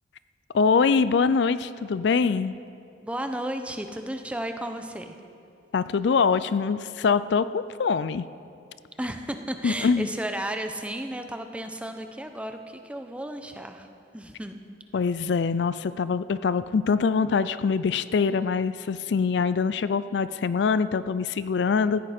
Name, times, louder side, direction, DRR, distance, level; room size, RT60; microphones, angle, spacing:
voice 1, 0.5-2.6 5.7-8.3 9.6-10.1 14.9-22.0, left 5 dB, 60° left, 14 dB, 0.4 m, -24 dB
voice 2, 3.0-5.2 9.0-14.6, right 1 dB, 5° right, 6 dB, 0.7 m, -33 dB
16.5 x 14.5 x 4.3 m, 2.5 s
head